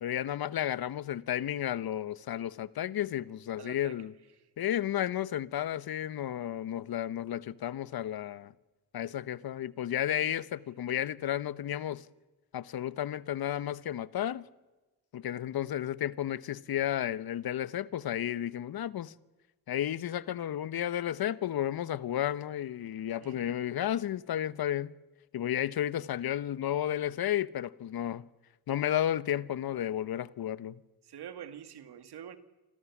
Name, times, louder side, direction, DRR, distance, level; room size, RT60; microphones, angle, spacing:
voice 1, 0.0-4.1 4.6-8.5 8.9-12.1 12.5-14.5 15.1-19.1 19.7-24.9 25.3-28.2 28.7-30.8, left 11 dB, 60° left, 1.0 m, -32 dB
voice 2, 3.6-4.0 10.1-10.3 23.2-23.6 31.0-32.4, right 9 dB, 70° right, 2.3 m, -46 dB
27.5 x 26.5 x 7.3 m
cardioid pair, 75°, 41 cm